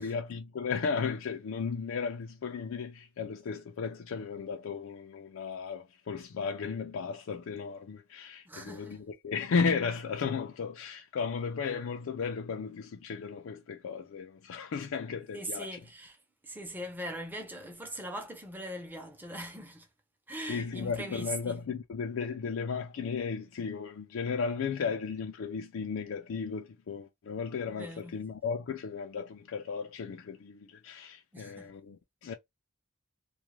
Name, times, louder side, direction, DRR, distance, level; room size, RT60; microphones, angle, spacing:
voice 1, 0.0-15.8 20.5-32.3, left 5 dB, 75° left, 0.4 m, -35 dB
voice 2, 8.5-9.0 15.3-16.2 16.4-19.9 20.3-21.6 27.7-28.2 31.3-31.7, right 1 dB, 10° right, 0.6 m, -41 dB
2.4 x 2.1 x 3.0 m
head